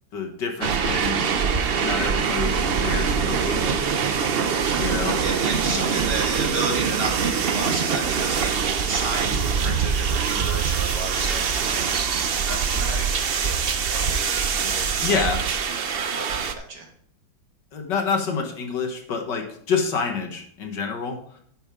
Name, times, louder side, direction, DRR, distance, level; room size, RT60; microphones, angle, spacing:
voice 1, 0.1-1.2 1.8-3.9 4.8-5.2 5.7-6.0 14.6-14.7 15.0-15.4 17.7-21.4, left 5 dB, 65° left, 3 dB, 2.1 m, -28 dB
sound 1, 0.6-16.5, right 6 dB, 70° right, 0.5 m, -24 dB
voice 2, 4.5-8.5 8.9-15.5 16.2-16.9, right 3 dB, 50° right, 1 dB, 2.2 m, -33 dB
10.5 x 9.2 x 3.7 m, 0.62 s
omnidirectional pair, 2.1 m